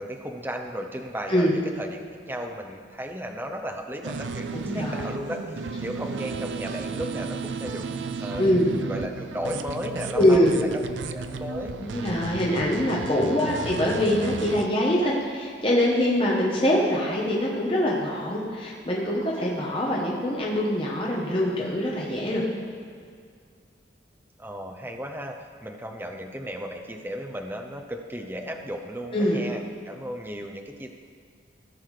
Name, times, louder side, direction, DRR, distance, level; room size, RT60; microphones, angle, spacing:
voice 1, 0.0-2.0 2.3-8.4 8.8-10.7 11.1-11.8 13.1-13.4 24.4-30.9, equal, 10° right, 2 dB, 0.7 m, -35 dB
sound 1, 4.0-14.7, right 4 dB, 80° right, 0.5 m, -34 dB
voice 2, 4.5-5.1 8.4-8.7 10.1-10.6 11.8-22.4 29.1-29.4, left 1 dB, 30° left, -4 dB, 1.3 m, -24 dB
16.0 x 6.2 x 4.9 m, 2.2 s
head